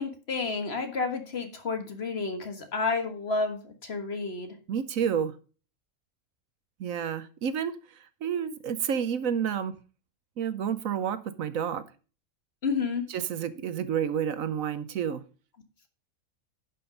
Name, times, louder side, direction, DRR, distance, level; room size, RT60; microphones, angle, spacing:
voice 1, 0.0-4.5 12.6-13.0, left 4 dB, 45° left, 6 dB, 1.7 m, -30 dB
voice 2, 4.7-5.3 6.8-7.7 8.2-9.7 10.4-11.8 13.1-15.2, right 8 dB, 70° right, 13 dB, 1.2 m, -29 dB
11.0 x 5.6 x 5.2 m, 0.36 s
omnidirectional pair, 1.5 m